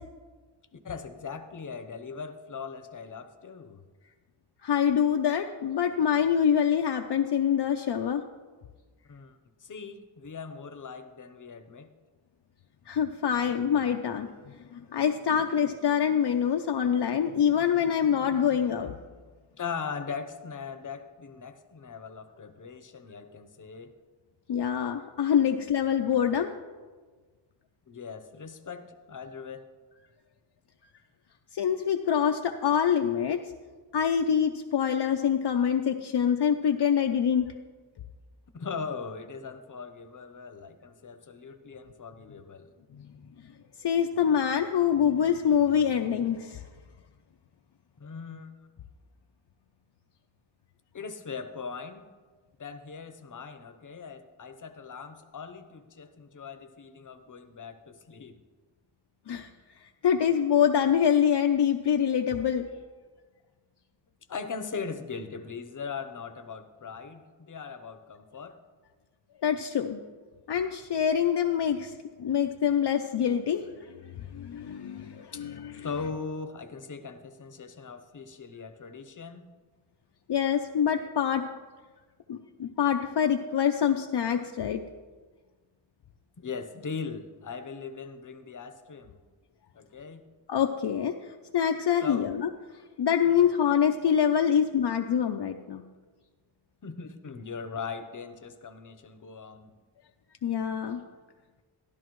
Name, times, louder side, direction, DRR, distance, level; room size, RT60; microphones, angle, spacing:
voice 1, 0.7-3.8 9.1-11.9 19.6-23.9 27.9-29.7 38.5-42.7 48.0-48.5 50.9-52.1 52.6-58.4 64.3-68.6 75.3-75.4 75.8-79.4 86.4-89.2 89.7-90.3 92.0-92.3 93.3-93.5 96.8-99.7, left 5 dB, 40° left, 9 dB, 0.8 m, -40 dB
voice 2, 4.6-8.2 12.9-19.0 24.5-26.5 31.5-33.4 33.9-37.5 43.8-46.6 59.3-59.5 60.0-62.7 69.4-70.0 70.5-71.9 72.2-75.7 80.3-81.4 82.3-84.8 90.5-91.1 91.5-92.5 93.0-95.8 100.4-101.0, left 8 dB, 60° left, 4 dB, 0.6 m, -25 dB
13.0 x 12.0 x 3.1 m, 1.4 s
wide cardioid pair, 110°, 46 cm